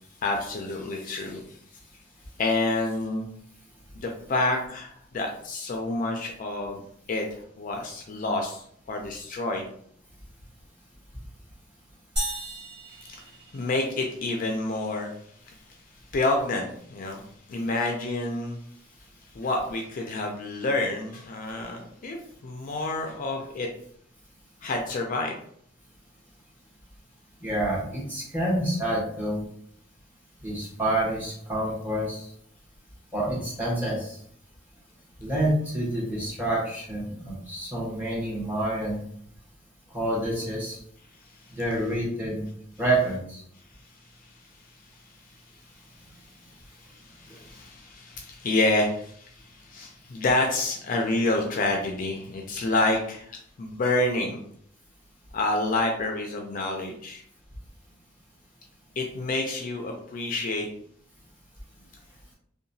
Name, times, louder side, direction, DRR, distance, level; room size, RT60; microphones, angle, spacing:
voice 1, 0.2-1.6 2.4-3.3 3.9-6.8 7.1-7.3 7.6-9.7 13.1-15.1 15.5-15.6 16.1-17.2 17.5-18.6 19.3-23.7 24.6-25.4 46.8-54.4 55.3-57.2 59.0-60.7, left 2 dB, 45° left, 2 dB, 0.4 m, -28 dB
sound 1, 12.2-14.1, right 1 dB, 60° right, 1.5 m, -34 dB
voice 2, 27.4-29.4 30.4-32.2 33.1-34.2 35.2-39.0 39.9-40.8 41.5-42.5 42.8-43.4 47.3-47.4, right 1 dB, 10° right, -5 dB, 1.1 m, -28 dB
2.8 x 2.2 x 2.6 m, 0.65 s
head